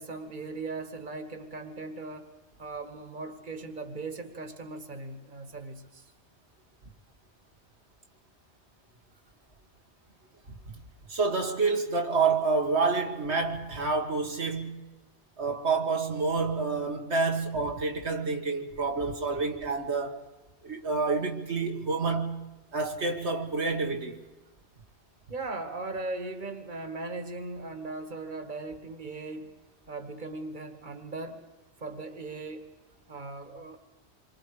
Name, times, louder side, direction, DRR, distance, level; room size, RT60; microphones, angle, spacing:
voice 1, 0.0-2.3 2.6-6.0 25.3-29.6 29.9-31.5 31.8-32.7 33.1-33.8, right 3 dB, 45° right, 2.0 m, -38 dB
voice 2, 11.1-14.8 15.4-20.2 20.6-22.4 22.7-24.2, right 4 dB, 75° right, 2.0 m, -28 dB
27.5 x 24.0 x 5.0 m
omnidirectional pair, 1.1 m